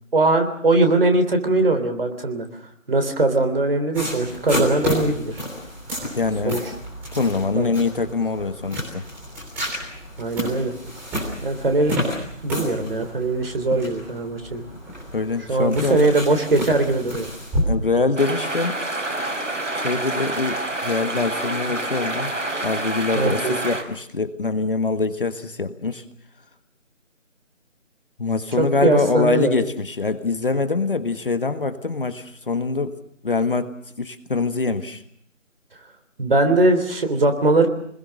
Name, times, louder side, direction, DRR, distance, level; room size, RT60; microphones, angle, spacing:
voice 1, 0.1-2.5 2.9-5.5 6.4-6.6 7.5-7.7 10.2-10.7 11.4-12.0 12.4-14.6 15.5-17.3 23.1-23.5 28.6-29.7 36.2-37.7, right 2 dB, 45° right, 5 dB, 3.5 m, -20 dB
sound 1, 3.9-17.6, left 1 dB, 5° right, 3.5 m, -30 dB
voice 2, 6.1-6.6 7.1-9.1 15.1-16.4 17.6-18.8 19.7-22.3 22.6-26.0 28.2-33.0 33.2-35.0, left 3 dB, 40° left, 9 dB, 1.5 m, -24 dB
sound 2, 18.2-23.8, right 2 dB, 70° right, 5.8 m, -27 dB
26.5 x 20.5 x 6.5 m, 0.68 s
figure-of-eight pair, 165°, 39 cm